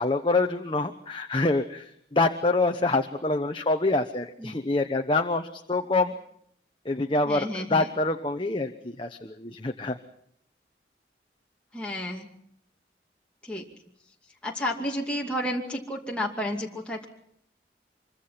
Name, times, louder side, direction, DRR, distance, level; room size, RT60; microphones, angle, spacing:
voice 1, 0.0-6.1 6.8-10.0, left 2 dB, 30° left, 5 dB, 1.0 m, -26 dB
voice 2, 7.2-7.9 11.7-12.3 13.4-13.7 14.4-17.1, left 1 dB, 5° left, -2 dB, 2.5 m, -31 dB
25.5 x 24.0 x 5.9 m, 0.71 s
head